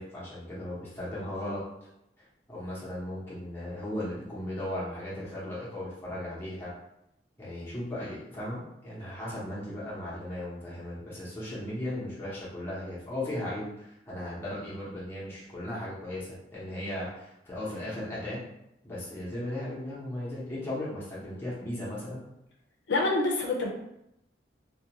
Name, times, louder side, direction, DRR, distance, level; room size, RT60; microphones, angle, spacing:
voice 1, 0.0-1.6 2.5-6.7 7.4-18.4 18.8-22.2, left 1 dB, 15° left, -8 dB, 0.8 m, -36 dB
voice 2, 22.9-23.7, left 2 dB, 75° left, -1 dB, 0.5 m, -26 dB
2.4 x 2.2 x 2.8 m, 0.83 s
head